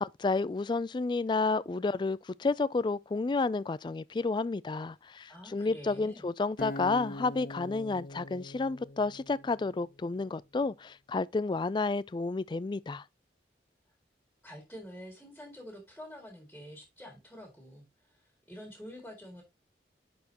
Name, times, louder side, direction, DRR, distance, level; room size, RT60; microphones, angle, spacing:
voice 1, 0.0-13.0, left 3 dB, 25° left, 0.3 m, -31 dB
voice 2, 5.3-6.2 14.4-19.4, equal, 5° left, 2.2 m, -47 dB
Acoustic guitar, 6.6-9.8, left 1 dB, 50° left, 0.7 m, -43 dB
10.5 x 4.3 x 2.9 m
head